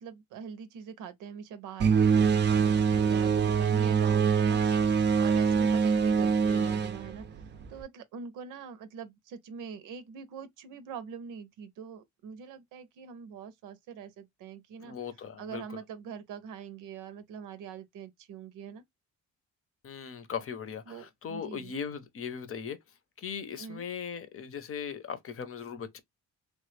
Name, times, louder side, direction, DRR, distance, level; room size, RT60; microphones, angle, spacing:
voice 1, 0.0-4.6 5.2-7.4 7.7-14.9 15.4-18.8 20.9-21.7 23.6-23.8, right 7 dB, 90° right, 0.6 m, -43 dB
sound 1, 1.8-7.8, right 6 dB, 35° right, 0.5 m, -24 dB
voice 2, 6.5-6.9 14.8-15.8 19.8-22.8 23.2-26.0, left 7 dB, 45° left, 0.7 m, -39 dB
3.2 x 2.1 x 3.2 m
cardioid pair, 90°, 30 cm